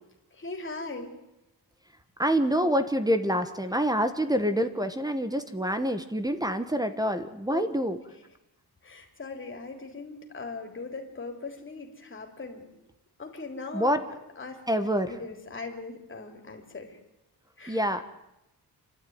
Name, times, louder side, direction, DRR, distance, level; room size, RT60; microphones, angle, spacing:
voice 1, 0.3-1.1 7.5-7.6 8.8-12.7 13.2-13.9 14.4-14.6 15.1-17.0 17.6-17.8, left 3 dB, 30° left, 3 dB, 3.4 m, -39 dB
voice 2, 2.2-8.0 13.7-14.0 14.7-15.1 17.7-18.0, equal, 10° right, 9 dB, 1.2 m, -26 dB
28.0 x 12.5 x 9.5 m, 0.92 s
wide cardioid pair, 140°, 40 cm